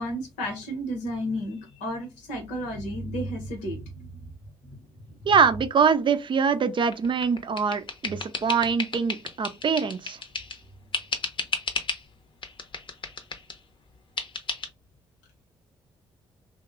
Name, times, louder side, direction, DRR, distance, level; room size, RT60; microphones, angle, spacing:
voice 1, 0.0-4.3 4.6-4.8 5.1-5.3, equal, 80° left, 0.9 m, -33 dB
voice 2, 5.3-10.2, right 6 dB, 40° right, 0.5 m, -23 dB
sound 1, 6.9-10.6 10.9-12.0 12.4-13.6 14.2-14.7, left 4 dB, 40° left, 0.7 m, -33 dB
3.0 x 2.1 x 2.4 m
hypercardioid pair, 45°, 13 cm